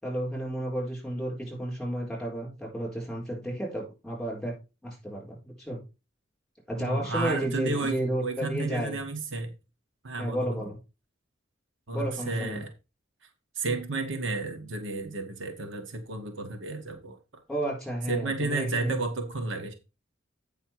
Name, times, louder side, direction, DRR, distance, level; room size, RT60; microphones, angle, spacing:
voice 1, 0.0-4.5 4.8-5.8 6.7-9.0 10.2-10.8 11.9-12.6 17.5-19.0, right 1 dB, ahead, 4.4 m, -32 dB
voice 2, 6.8-9.5 10.0-10.7 11.9-12.7 13.5-17.2 18.1-19.7, right 3 dB, 70° right, 1.3 m, -32 dB
8.5 x 5.6 x 4.6 m
head